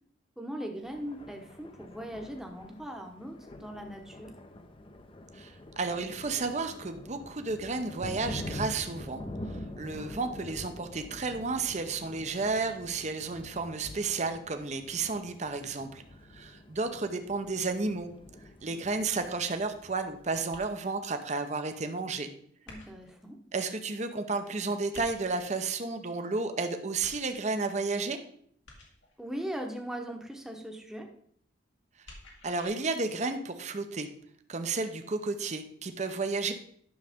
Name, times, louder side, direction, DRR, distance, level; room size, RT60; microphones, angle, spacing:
voice 1, 0.4-4.3 10.0-10.2 18.7-18.8 22.7-23.4 29.2-31.1, equal, 5° right, 2 dB, 1.0 m, -40 dB
Thunder, 0.8-20.6, left 1 dB, 30° left, 0.7 m, -45 dB
voice 2, 5.3-9.2 9.8-16.0 16.3-18.1 18.6-22.3 23.5-28.2 32.4-34.1 34.5-36.5, right 3 dB, 40° right, 7 dB, 0.7 m, -32 dB
sound 1, 20.5-21.1 22.7-23.2 24.9-25.6 27.0-27.7 28.7-29.2 32.0-32.7, left 2 dB, 80° left, 2.0 m, -51 dB
10.0 x 6.3 x 3.6 m, 0.63 s
head